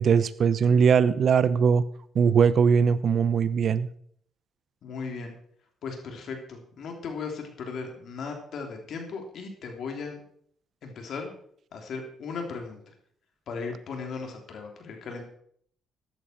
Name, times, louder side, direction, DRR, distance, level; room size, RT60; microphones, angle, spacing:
voice 1, 0.0-1.8 2.1-3.9, right 6 dB, 55° right, 16 dB, 0.8 m, -21 dB
voice 2, 4.8-5.3 5.8-10.2 10.8-11.3 11.7-12.9 13.5-15.2, left 4 dB, 65° left, 3 dB, 3.4 m, -37 dB
14.5 x 11.0 x 4.6 m, 0.63 s
cardioid pair, 90°, 0 cm